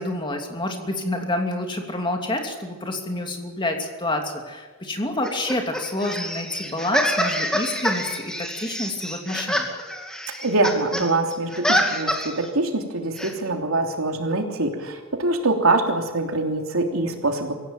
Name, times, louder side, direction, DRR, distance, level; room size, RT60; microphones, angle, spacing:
voice 1, 0.0-9.8, left 1 dB, 25° left, 3 dB, 2.9 m, -28 dB
sound 1, 5.2-11.1 11.3-12.5 13.2-13.3, equal, 5° left, 2.5 m, -26 dB
voice 2, 10.4-17.5, right 2 dB, 80° right, 3 dB, 3.2 m, -24 dB
25.5 x 16.5 x 9.2 m, 1.3 s
head